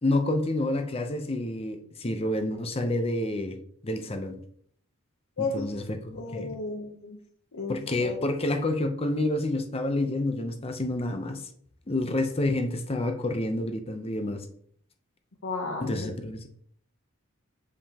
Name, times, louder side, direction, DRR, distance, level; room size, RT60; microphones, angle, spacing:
voice 1, 0.0-3.6 3.8-4.4 5.4-6.5 7.7-11.4 11.9-14.4 15.8-16.5, left 1 dB, 30° left, 7 dB, 0.6 m, -28 dB
voice 2, 5.4-5.7 6.1-7.2 7.5-8.2 15.4-16.1, left 3 dB, 80° left, 1 dB, 0.9 m, -33 dB
7.4 x 5.0 x 2.9 m, 0.64 s
head